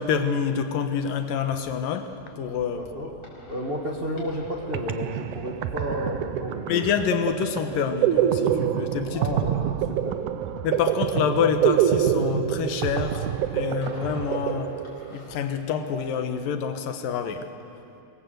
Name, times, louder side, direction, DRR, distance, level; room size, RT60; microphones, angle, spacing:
voice 1, 0.0-3.1 6.7-9.4 10.6-14.8 15.1-17.5, left 7 dB, 80° left, 8 dB, 2.9 m, -27 dB
sound 1, 2.1-15.5, left 1 dB, 15° left, 6.1 m, -50 dB
voice 2, 2.8-3.1 3.4-6.7 9.1-10.2, equal, 35° right, 0 dB, 0.9 m, -32 dB
sound 2, 4.4-4.5 4.7-15.3, right 10 dB, 75° right, 2.2 m, -26 dB
25.5 x 20.0 x 8.0 m, 2.7 s
omnidirectional pair, 3.9 m